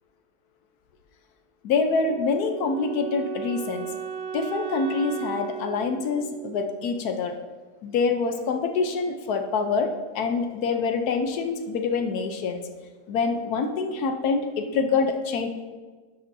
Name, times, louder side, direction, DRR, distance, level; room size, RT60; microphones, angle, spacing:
voice 1, 1.6-3.9 4.3-7.3 7.8-12.6 13.1-15.5, left 4 dB, 70° left, 6 dB, 1.2 m, -26 dB
Wind instrument woodwind instrument, 2.0-7.1, right 9 dB, 60° right, 0.9 m, -36 dB
11.0 x 7.0 x 2.6 m, 1.4 s
omnidirectional pair, 1.8 m